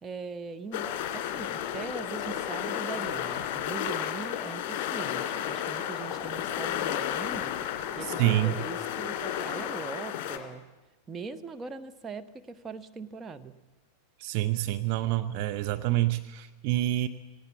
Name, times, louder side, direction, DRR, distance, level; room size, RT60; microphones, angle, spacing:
voice 1, 0.0-7.6 8.0-10.7 11.1-13.6, right 4 dB, 20° right, 7 dB, 1.1 m, -41 dB
sound 1, 0.7-10.4, left 10 dB, 45° left, 2.4 m, -32 dB
voice 2, 8.0-8.6 14.2-17.1, right 15 dB, 45° right, 9 dB, 0.7 m, -27 dB
18.5 x 17.5 x 8.3 m, 1.1 s
figure-of-eight pair, 90°, 0 cm